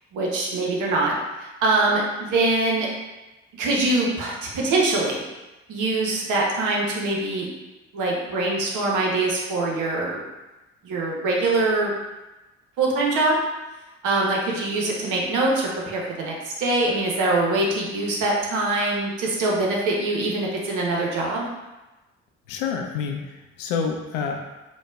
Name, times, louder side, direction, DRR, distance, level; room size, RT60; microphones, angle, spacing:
voice 1, 0.1-1.1 1.4-2.9 3.6-5.2 5.7-7.5 7.9-10.2 10.8-11.9 12.8-13.4 14.0-21.5, right 2 dB, 60° right, -3 dB, 0.8 m, -23 dB
voice 2, 22.5-24.4, left 6 dB, 70° left, 3 dB, 0.5 m, -28 dB
4.0 x 2.2 x 2.3 m, 1.1 s
figure-of-eight pair, 40°, 36 cm